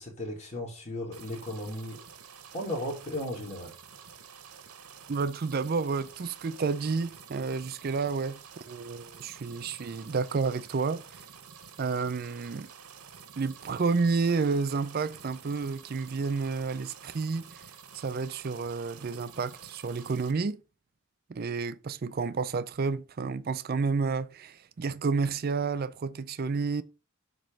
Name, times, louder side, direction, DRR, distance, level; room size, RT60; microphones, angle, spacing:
voice 1, 0.0-2.0 2.5-3.7, left 1 dB, 30° left, 2.2 m, -35 dB
sound 1, 1.1-20.3, right 7 dB, 85° right, 1.0 m, -50 dB
voice 2, 5.1-11.2 11.8-12.7 13.4-17.7 17.9-20.6 21.3-26.8, right 4 dB, 45° right, 0.4 m, -30 dB
7.5 x 3.0 x 5.1 m
head